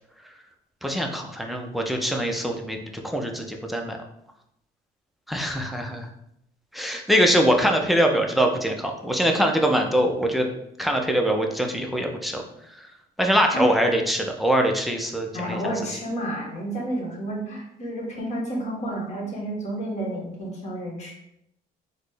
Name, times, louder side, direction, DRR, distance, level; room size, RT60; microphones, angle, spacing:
voice 1, 0.8-4.0 5.3-6.1 6.7-10.5 10.8-12.4 13.2-15.7, equal, ahead, 2 dB, 0.4 m, -23 dB
voice 2, 15.3-21.1, right 1 dB, 40° left, -2 dB, 1.2 m, -30 dB
4.0 x 2.1 x 3.3 m, 0.77 s
cardioid pair, 110°, 17 cm